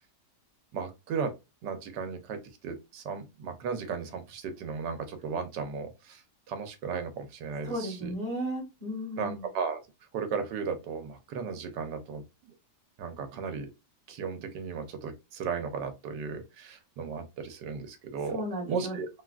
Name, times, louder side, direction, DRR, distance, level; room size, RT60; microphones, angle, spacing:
voice 1, 0.7-1.3 1.6-6.2 6.5-8.1 9.2-9.8 10.1-12.5 13.0-13.7 14.1-18.4 18.7-19.1, right 5 dB, 85° right, 7 dB, 1.3 m, -35 dB
voice 2, 7.6-9.4 18.3-19.0, equal, 30° right, -5 dB, 1.3 m, -34 dB
3.5 x 2.4 x 2.3 m, 0.24 s
omnidirectional pair, 1.8 m